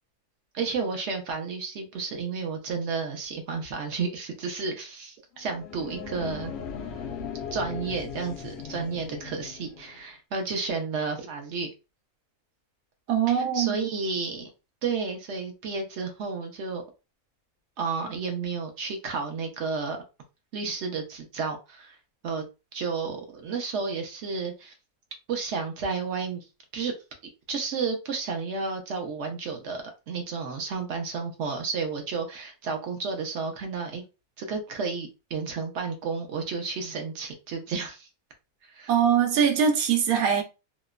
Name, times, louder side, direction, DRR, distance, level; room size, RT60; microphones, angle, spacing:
voice 1, 0.5-6.5 7.5-11.7 13.3-14.5 14.8-16.8 17.8-20.0 20.5-22.0 22.2-22.4 22.7-24.7 25.3-26.5 26.7-26.9 27.5-34.0 34.4-38.1 38.6-38.9, right 4 dB, 60° right, 0.8 m, -32 dB
sound 1, 5.4-10.0, left 6 dB, 65° left, 0.6 m, -38 dB
voice 2, 13.1-13.8 38.9-40.4, right 8 dB, 85° right, 1.1 m, -22 dB
2.9 x 2.1 x 2.3 m
omnidirectional pair, 1.5 m